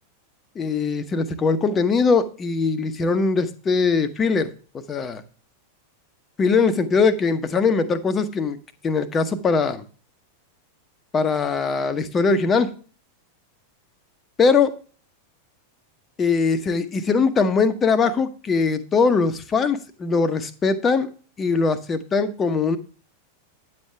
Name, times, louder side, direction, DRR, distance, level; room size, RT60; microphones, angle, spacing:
voice 1, 0.5-4.5 4.9-5.2 6.4-8.6 8.8-9.8 11.1-12.7 14.4-14.7 16.2-21.1 21.4-22.8, left 4 dB, 20° left, 10 dB, 1.0 m, -21 dB
9.6 x 7.3 x 3.3 m, 0.38 s
figure-of-eight pair, 90°, 0 cm